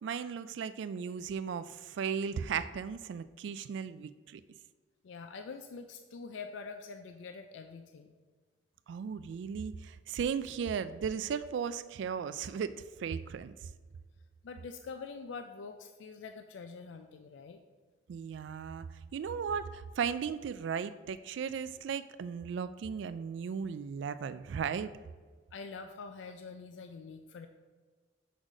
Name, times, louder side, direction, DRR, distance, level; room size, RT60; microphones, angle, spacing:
voice 1, 0.0-4.4 8.9-13.6 18.1-24.9, right 7 dB, 75° right, 14 dB, 0.3 m, -36 dB
voice 2, 5.0-8.2 14.4-17.6 25.5-27.5, left 4 dB, 85° left, 7 dB, 0.4 m, -45 dB
6.3 x 4.1 x 4.9 m, 1.5 s
head